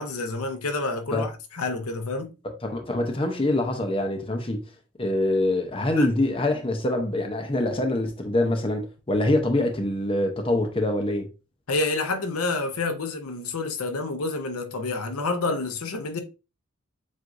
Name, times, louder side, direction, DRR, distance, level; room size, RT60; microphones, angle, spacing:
voice 1, 0.0-2.3 6.0-6.1 11.7-16.2, left 3 dB, 80° left, 0.7 m, -28 dB
voice 2, 2.4-4.6 5.0-11.3, left 1 dB, 25° left, 0.6 m, -25 dB
7.5 x 2.5 x 2.5 m
head